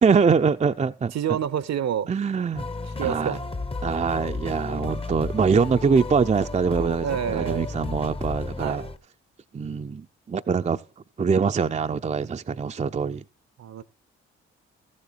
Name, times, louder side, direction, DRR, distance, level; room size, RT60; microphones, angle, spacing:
voice 1, 0.0-1.1 2.1-2.7 3.0-3.4 3.8-8.8 9.5-10.8 11.2-13.2, right 5 dB, 20° right, 0.6 m, -23 dB
voice 2, 1.1-2.1 3.0-3.4 3.8-3.9 7.0-7.7 8.6-8.9 13.6-13.8, right 9 dB, 50° right, 0.8 m, -28 dB
sound 1, 2.5-9.0, left 3 dB, 15° left, 0.8 m, -33 dB
14.5 x 7.4 x 4.1 m
hypercardioid pair, 45°, 33 cm